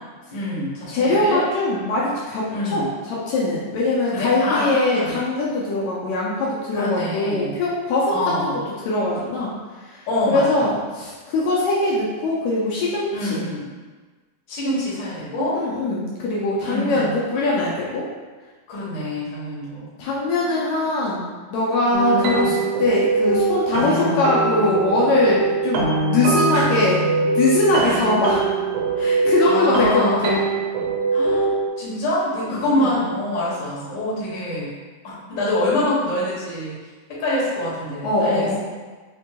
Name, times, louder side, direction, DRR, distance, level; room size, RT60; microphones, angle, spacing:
voice 1, 0.3-1.4 2.5-2.9 4.1-5.2 6.7-7.5 8.1-8.6 10.1-10.7 13.1-13.7 14.5-15.6 16.6-17.1 18.7-19.9 20.4-20.8 22.0-22.6 23.8-24.3 26.5-26.7 27.8-28.0 29.4-30.3 31.1-34.7 35.0-36.8 37.1-38.5, left 1 dB, 65° left, -8 dB, 1.1 m, -26 dB
voice 2, 0.9-8.2 8.4-9.5 9.8-13.4 15.5-18.1 20.0-27.0 27.3-28.4 29.0-30.4 32.5-33.0 38.0-38.6, left 2 dB, 85° left, -6 dB, 1.6 m, -22 dB
sound 1, 21.9-31.7, right 3 dB, 85° right, 2.2 m, -22 dB
5.1 x 2.2 x 2.8 m, 1.4 s
omnidirectional pair, 3.8 m